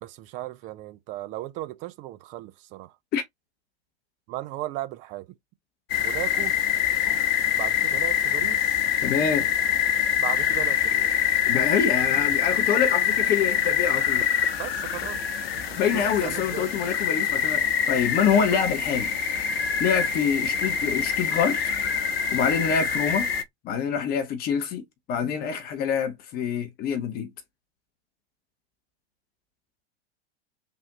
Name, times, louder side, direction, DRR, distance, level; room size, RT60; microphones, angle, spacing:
voice 1, 0.0-2.9 4.3-5.3 6.0-6.5 7.6-8.8 10.2-11.1 14.6-15.2 15.5-16.7 18.2-18.6, right 15 dB, 25° right, 0.3 m, -36 dB
sound 1, 5.9-23.4, left 8 dB, 60° left, 0.9 m, -25 dB
voice 2, 9.0-9.5 11.5-14.2 15.8-19.1 19.8-21.6 22.3-23.3 23.6-24.8 25.1-27.3, left 7 dB, 30° left, 0.7 m, -26 dB
3.5 x 2.4 x 2.8 m
figure-of-eight pair, 95°, 33 cm